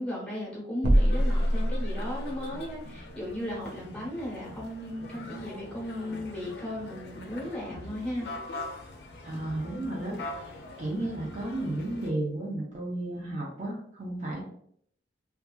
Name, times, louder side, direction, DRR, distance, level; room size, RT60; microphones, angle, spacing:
voice 1, 0.0-8.3, left 1 dB, 5° left, -5 dB, 1.0 m, -36 dB
sound 1, 0.8-2.4, equal, 85° right, 0.6 m, -24 dB
sound 2, 0.9-12.1, left 2 dB, 60° left, 0.4 m, -43 dB
voice 2, 9.3-14.4, right 1 dB, 40° right, -4 dB, 0.6 m, -33 dB
2.7 x 2.4 x 2.3 m, 0.64 s
head